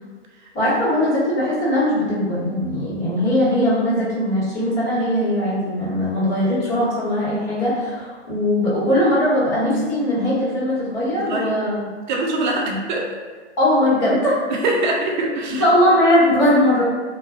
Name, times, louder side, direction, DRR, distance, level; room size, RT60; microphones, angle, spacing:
voice 1, 0.5-11.8 12.6-12.8 13.6-14.5 15.6-16.8, left 1 dB, 35° left, -9 dB, 1.3 m, -20 dB
voice 2, 11.2-11.6 12.1-13.2 14.5-15.7, right 2 dB, 40° right, 0 dB, 0.5 m, -23 dB
2.4 x 2.2 x 2.3 m, 1.4 s
hypercardioid pair, 130°, 35 cm